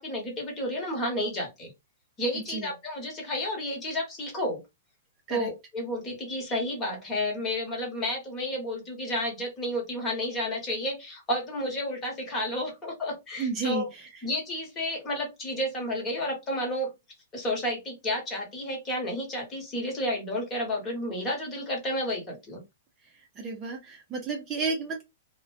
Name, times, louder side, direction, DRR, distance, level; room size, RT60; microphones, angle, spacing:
voice 1, 0.0-1.7 2.2-4.6 5.3-13.9 14.2-16.9 17.3-22.6, left 1 dB, 20° left, 0 dB, 1.1 m, -31 dB
voice 2, 13.4-13.8 23.4-25.0, right 4 dB, 20° right, 1 dB, 0.5 m, -31 dB
2.4 x 2.1 x 2.4 m, 0.22 s
hypercardioid pair, 160°, 0 cm